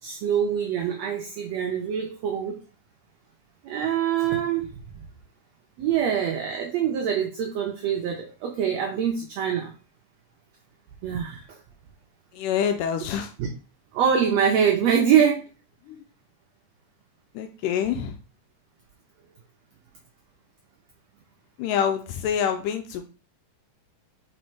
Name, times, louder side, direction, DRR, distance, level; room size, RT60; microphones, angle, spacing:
voice 1, 0.0-2.6 3.6-4.7 5.8-9.7 11.0-11.6 13.4-13.5 13.9-15.5, right 8 dB, 75° right, 3 dB, 1.6 m, -24 dB
voice 2, 12.3-13.3 15.9-16.0 17.3-18.2 21.6-23.0, left 8 dB, 85° left, 6 dB, 2.1 m, -26 dB
5.0 x 4.3 x 4.5 m, 0.35 s
omnidirectional pair, 3.8 m